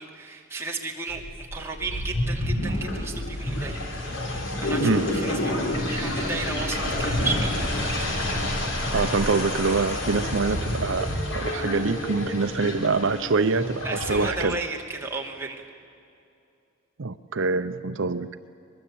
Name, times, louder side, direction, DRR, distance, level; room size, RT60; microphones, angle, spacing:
voice 1, 0.0-7.6 13.8-15.6, right 3 dB, 15° right, -1 dB, 2.7 m, -34 dB
sound 1, 1.1-14.3, left 1 dB, 70° left, 3.8 m, -28 dB
voice 2, 8.9-14.6 17.0-18.3, right 4 dB, 70° right, 11 dB, 0.7 m, -25 dB
23.0 x 22.0 x 8.6 m, 2.6 s
head